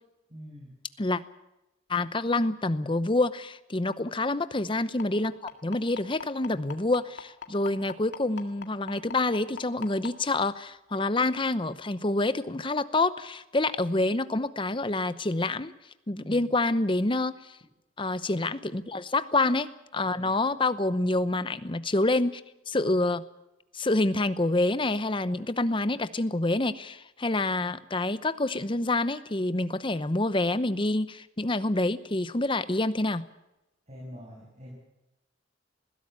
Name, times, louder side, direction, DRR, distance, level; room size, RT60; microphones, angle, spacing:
voice 1, 0.3-0.7 16.2-16.5 20.1-20.3 33.9-34.7, equal, 35° right, -2 dB, 6.5 m, -44 dB
voice 2, 1.9-5.3 5.6-15.7 16.1-17.3 18.0-22.4 22.7-23.2 23.7-33.2, left 2 dB, 25° left, 13 dB, 0.8 m, -27 dB
sound 1, 5.0-10.1 11.1-11.2 11.6-11.7 12.2-12.3, left 6 dB, 75° left, 2.0 m, -39 dB
20.5 x 16.0 x 8.8 m, 0.94 s
head